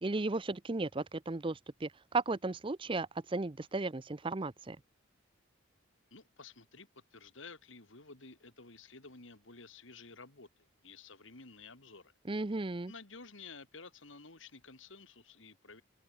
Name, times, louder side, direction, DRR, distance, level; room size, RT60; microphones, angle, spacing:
voice 1, 0.0-4.8 12.3-12.9, right 3 dB, 25° right, 0.6 m, -35 dB
voice 2, 6.1-12.1 12.9-15.8, left 4 dB, 70° left, 3.2 m, -53 dB
open air
head